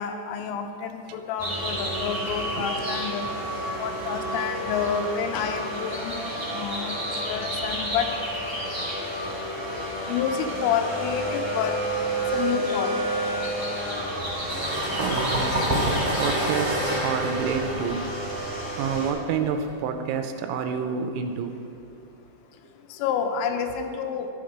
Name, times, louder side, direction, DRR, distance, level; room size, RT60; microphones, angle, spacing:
voice 1, 0.0-3.2 3.8-6.1 6.5-6.9 7.3-8.1 10.1-11.8 12.3-12.9 23.0-24.3, left 7 dB, 85° left, 6 dB, 3.3 m, -29 dB
sound 1, 1.4-19.1, right 1 dB, 35° left, 0.4 m, -30 dB
sound 2, 14.2-19.7, equal, 15° right, 1.4 m, -28 dB
voice 2, 14.9-15.8 16.2-18.3 18.8-21.5, right 6 dB, 85° right, 6 dB, 3.2 m, -29 dB
12.0 x 7.8 x 5.0 m, 2.5 s
omnidirectional pair, 5.8 m